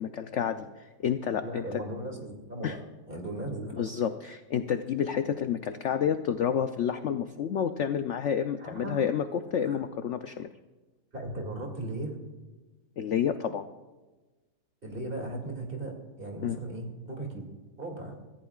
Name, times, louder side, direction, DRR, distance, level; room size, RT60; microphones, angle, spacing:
voice 1, 0.0-1.8 2.6-2.8 3.8-10.5 13.0-13.7 16.4-16.6, left 8 dB, 65° left, 8 dB, 0.7 m, -29 dB
voice 2, 1.4-3.9 8.6-9.1 9.6-9.8 11.1-12.2 14.8-17.4 17.8-18.2, right 2 dB, 30° right, 1 dB, 2.7 m, -37 dB
24.5 x 14.5 x 2.4 m, 1.2 s
omnidirectional pair, 1.8 m